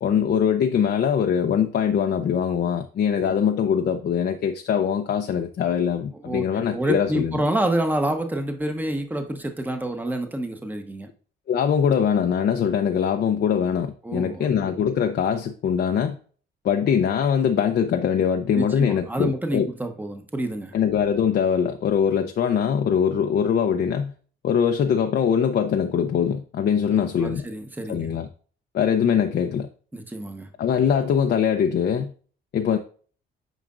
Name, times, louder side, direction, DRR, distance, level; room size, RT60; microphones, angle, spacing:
voice 1, 0.0-7.4 11.5-16.2 16.6-19.7 20.7-24.1 24.4-27.4 27.9-28.3 28.7-29.7 30.6-32.1 32.5-32.8, left 8 dB, 55° left, 0.7 m, -22 dB
voice 2, 6.2-11.1 14.0-14.5 18.5-20.7 26.9-28.1 29.9-30.5, right 1 dB, 10° right, 1.1 m, -28 dB
9.2 x 5.1 x 2.5 m
cardioid pair, 90°, 20 cm